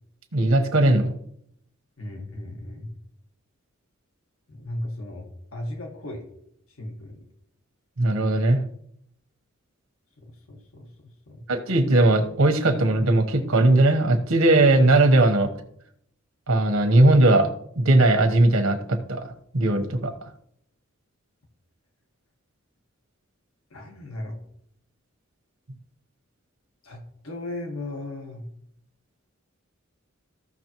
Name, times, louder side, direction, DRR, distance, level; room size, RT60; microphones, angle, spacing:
voice 1, 0.3-1.1 8.0-8.6 11.5-15.5 16.5-17.5 17.8-20.1, right 2 dB, 85° right, 5 dB, 1.1 m, -19 dB
voice 2, 2.0-2.9 4.5-6.3 6.8-7.2 10.2-11.4 23.7-24.4 26.8-28.5, left 1 dB, 85° left, 2 dB, 1.6 m, -36 dB
15.0 x 6.1 x 3.0 m, 0.71 s
head